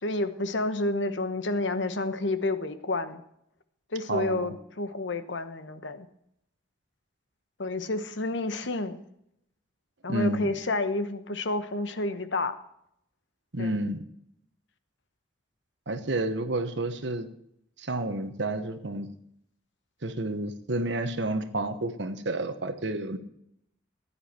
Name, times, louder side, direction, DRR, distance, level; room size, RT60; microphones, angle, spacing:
voice 1, 0.0-3.2 3.9-6.1 7.6-9.0 10.0-12.5 13.6-13.8, left 2 dB, 75° left, 10 dB, 1.0 m, -30 dB
voice 2, 4.1-4.5 10.1-10.5 13.5-14.0 15.9-17.3 17.8-19.1 20.0-23.2, right 2 dB, 70° right, 9 dB, 1.2 m, -30 dB
15.0 x 10.0 x 4.4 m, 0.75 s
head